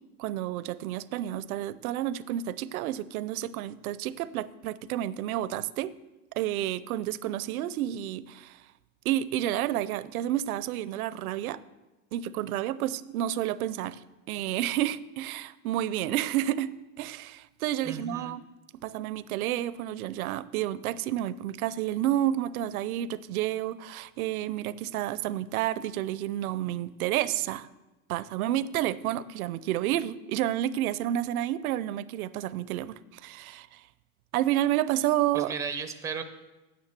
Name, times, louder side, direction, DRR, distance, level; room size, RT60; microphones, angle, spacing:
voice 1, 0.2-5.9 6.3-8.6 9.0-11.6 12.1-14.0 14.3-16.7 17.0-18.4 18.8-27.7 28.1-33.8 34.3-35.5, right 13 dB, 85° right, 17 dB, 0.6 m, -30 dB
voice 2, 17.8-18.4 35.3-36.2, right 5 dB, 10° right, 9 dB, 0.4 m, -35 dB
9.6 x 6.5 x 7.4 m, 1.1 s
supercardioid pair, 135°, 42 cm